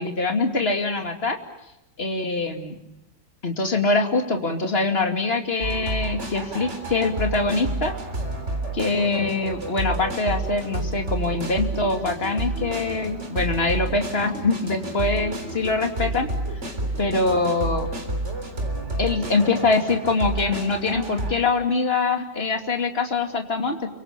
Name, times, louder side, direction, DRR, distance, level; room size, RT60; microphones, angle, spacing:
voice 1, 0.0-1.4 2.0-2.8 3.4-7.9 8.7-16.3 17.0-17.9 19.0-23.8, left 3 dB, 35° left, 5 dB, 2.8 m, -24 dB
sound 1, 5.6-21.3, right 2 dB, 40° right, 4.0 m, -30 dB
29.5 x 25.0 x 6.8 m, 0.93 s
omnidirectional pair, 1.9 m